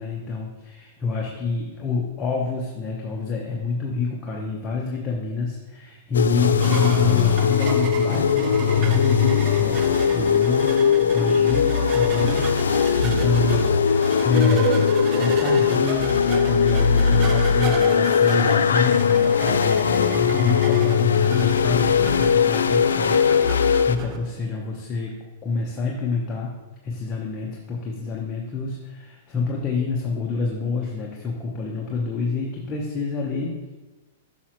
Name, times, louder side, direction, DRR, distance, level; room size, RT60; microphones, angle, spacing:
voice 1, 0.0-23.2 23.5-26.5 26.8-33.7, left 4 dB, 25° left, -2 dB, 1.0 m, -27 dB
sound 1, 6.1-24.0, left 7 dB, 90° left, 0.3 m, -20 dB
sound 2, 6.4-24.2, right 6 dB, 40° right, 0.7 m, -33 dB
8.3 x 5.9 x 3.1 m, 1.2 s
hypercardioid pair, 120°, 0 cm